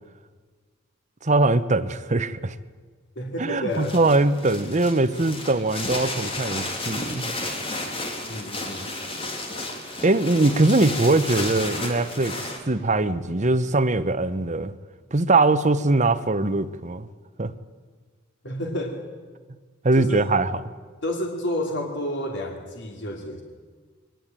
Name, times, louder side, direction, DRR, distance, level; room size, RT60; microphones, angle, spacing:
voice 1, 1.2-2.5 3.4-7.3 10.0-14.7 15.1-17.1 17.4-17.5 19.8-20.5, right 2 dB, 35° right, 1.0 m, -21 dB
voice 2, 3.2-4.0 8.3-8.9 18.4-19.0 19.9-20.3 21.0-23.4, left 1 dB, 65° left, 2.8 m, -30 dB
sound 1, 3.7-12.6, left 2 dB, 30° left, 3.5 m, -32 dB
22.5 x 19.5 x 9.0 m
head